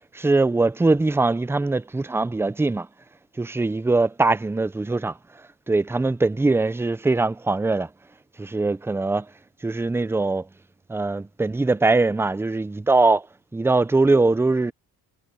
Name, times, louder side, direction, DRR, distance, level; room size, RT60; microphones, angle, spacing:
voice 1, 0.1-2.9 3.4-5.2 5.7-7.9 8.4-9.3 9.6-10.5 10.9-13.3 13.5-14.7, right 3 dB, 5° right, 0.6 m, -21 dB
cardioid pair, 130°, 39 cm